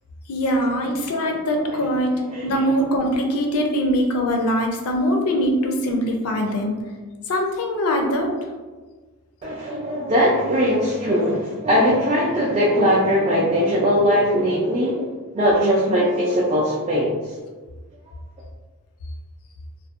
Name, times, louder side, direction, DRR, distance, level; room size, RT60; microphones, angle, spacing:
voice 1, 0.3-6.7 7.3-8.3, equal, 75° left, 2 dB, 0.4 m, -22 dB
voice 2, 1.3-1.8 2.2-2.8 9.4-15.1 15.3-17.4, equal, 30° right, -5 dB, 0.3 m, -20 dB
2.6 x 2.1 x 2.3 m, 1.3 s
head